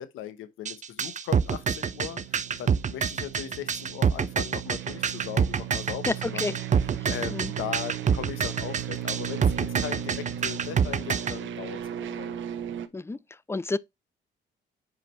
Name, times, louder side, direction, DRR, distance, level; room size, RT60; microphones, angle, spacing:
voice 1, 0.0-6.6 7.1-12.4, left 10 dB, 90° left, 1.1 m, -38 dB
sound 1, 0.7-11.4, right 7 dB, 40° right, 0.7 m, -26 dB
sound 2, 1.3-12.9, right 10 dB, 75° right, 1.0 m, -37 dB
voice 2, 6.1-6.5 7.3-7.5 12.9-13.2 13.5-13.8, left 3 dB, 15° left, 0.5 m, -29 dB
7.4 x 5.1 x 3.2 m
cardioid pair, 90°, 20 cm